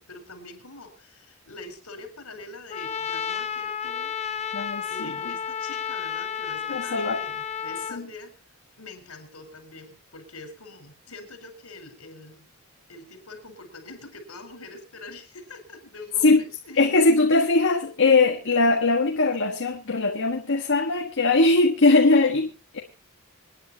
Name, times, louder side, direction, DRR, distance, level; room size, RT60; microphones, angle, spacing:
voice 1, 0.0-4.1 4.9-8.3 8.8-12.4 12.9-16.9, left 2 dB, 80° left, 4.8 m, -44 dB
Trumpet, 2.7-8.0, left 8 dB, 30° left, 0.9 m, -31 dB
voice 2, 4.5-5.1 6.7-7.2 7.9-8.1 16.2-16.4 16.8-22.8, left 3 dB, 60° left, 1.5 m, -20 dB
27.5 x 10.0 x 2.9 m
head